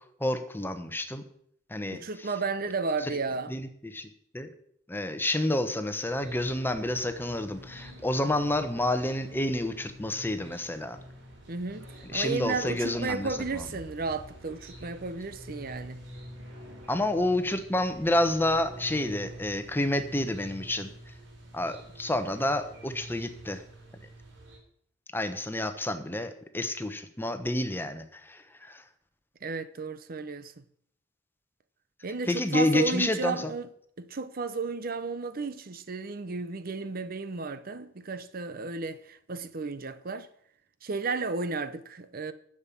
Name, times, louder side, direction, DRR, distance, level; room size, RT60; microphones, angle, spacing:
voice 1, 0.2-1.2 1.7-2.0 3.5-4.1 4.3-4.5 4.9-11.0 12.1-13.4 16.9-20.9 21.5-23.6 25.1-28.8 32.3-33.5, left 1 dB, 10° left, 1.0 m, -29 dB
voice 2, 1.9-3.5 11.5-16.0 29.4-30.5 32.0-33.7 34.0-40.3 40.8-42.3, right 4 dB, 50° right, 0.8 m, -33 dB
sound 1, 6.0-24.6, right 1 dB, 70° right, 3.9 m, -47 dB
11.0 x 7.5 x 8.5 m
head